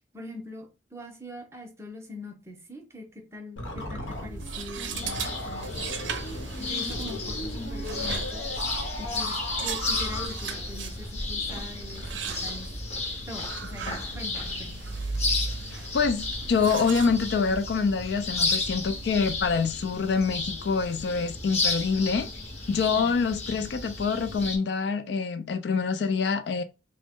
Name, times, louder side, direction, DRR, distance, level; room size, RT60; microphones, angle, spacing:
voice 1, 0.1-3.1 3.3-5.9 6.6-8.4 9.0-12.7 13.3-14.8 23.0-23.1, left 1 dB, 15° right, 0.6 m, -42 dB
sound 1, 3.6-10.3, left 1 dB, 90° left, 0.9 m, -37 dB
sound 2, 4.1-19.6, right 4 dB, 80° right, 0.5 m, -38 dB
sound 3, 4.9-24.6, left 3 dB, 35° left, 0.7 m, -33 dB
voice 2, 15.7-22.3 22.7-26.6, left 5 dB, 60° left, 0.3 m, -26 dB
3.0 x 2.0 x 3.5 m
head